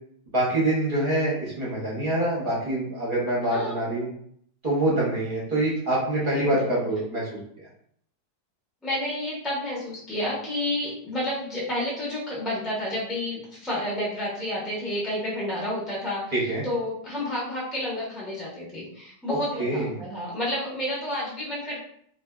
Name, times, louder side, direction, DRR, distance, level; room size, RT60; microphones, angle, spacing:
voice 1, 0.3-4.1 4.6-7.3 16.3-16.6 19.3-20.0, right 1 dB, 45° right, -6 dB, 0.8 m, -25 dB
voice 2, 6.4-7.0 8.8-16.3 16.6-21.8, left 1 dB, ahead, -7 dB, 0.4 m, -30 dB
2.6 x 2.4 x 2.2 m, 0.65 s
omnidirectional pair, 1.7 m